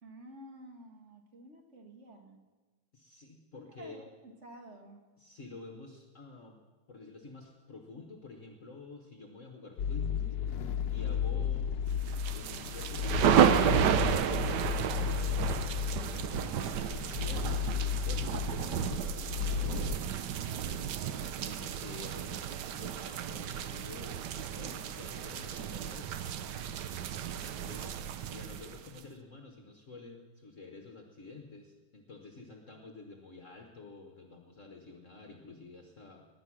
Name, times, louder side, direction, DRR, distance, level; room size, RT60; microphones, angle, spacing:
voice 1, 0.0-2.4 3.5-5.1 20.4-20.9 27.3-28.0, right 1 dB, 40° right, 4 dB, 1.7 m, -52 dB
voice 2, 2.9-4.0 5.2-6.6 6.9-10.3 10.9-11.7 12.3-13.9 14.4-15.9 16.3-20.0 21.3-26.2 27.7-28.0 28.3-36.3, left 3 dB, 45° left, 3 dB, 1.4 m, -49 dB
sound 1, 9.8-20.0, left 8 dB, 65° left, 1.2 m, -33 dB
sound 2, 12.1-29.0, right 9 dB, 70° right, 1.3 m, -32 dB
20.0 x 9.6 x 6.1 m, 1.3 s
omnidirectional pair, 2.0 m